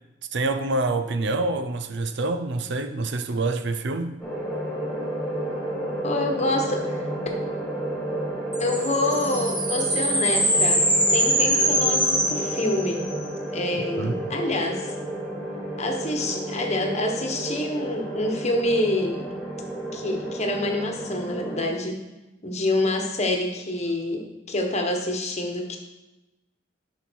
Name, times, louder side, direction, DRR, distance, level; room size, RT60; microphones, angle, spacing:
voice 1, 0.3-4.2 14.0-14.2, right 2 dB, 65° right, 10 dB, 0.6 m, -26 dB
sound 1, 4.2-21.7, right 1 dB, ahead, 3.4 m, -31 dB
voice 2, 6.0-7.1 8.6-10.8 11.1-13.1 13.5-14.9 15.8-19.3 19.9-22.0 22.4-25.8, left 2 dB, 35° left, 3 dB, 1.3 m, -27 dB
sound 2, 8.5-13.1, equal, 25° right, 2.2 m, -23 dB
11.0 x 5.7 x 4.6 m, 1.0 s
head